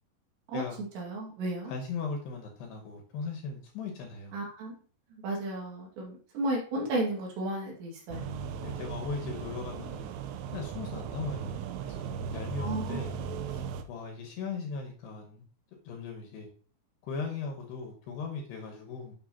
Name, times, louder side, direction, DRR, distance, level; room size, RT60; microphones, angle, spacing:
voice 1, 1.0-1.7 4.3-4.7 5.2-8.5 12.6-13.0, right 1 dB, 65° right, 4.0 m, -33 dB
voice 2, 1.7-4.4 8.6-10.1 10.5-13.1 13.5-15.4 15.8-16.5 17.0-19.2, left 4 dB, 75° left, 2.7 m, -38 dB
sound 1, 8.1-13.8, right 6 dB, 85° right, 3.2 m, -37 dB
9.6 x 6.5 x 2.8 m
omnidirectional pair, 5.8 m